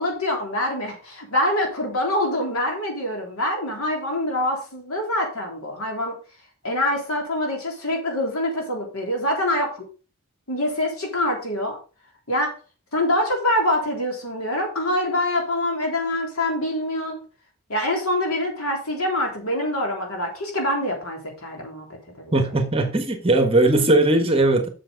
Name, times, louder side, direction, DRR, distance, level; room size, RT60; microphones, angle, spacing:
voice 1, 0.0-6.2 6.6-9.8 10.5-11.8 12.3-12.5 12.9-17.2 17.7-22.6, left 1 dB, 90° left, 3.5 m, -25 dB
voice 2, 22.3-24.7, right 2 dB, 25° right, 1.4 m, -19 dB
7.6 x 6.9 x 5.2 m
head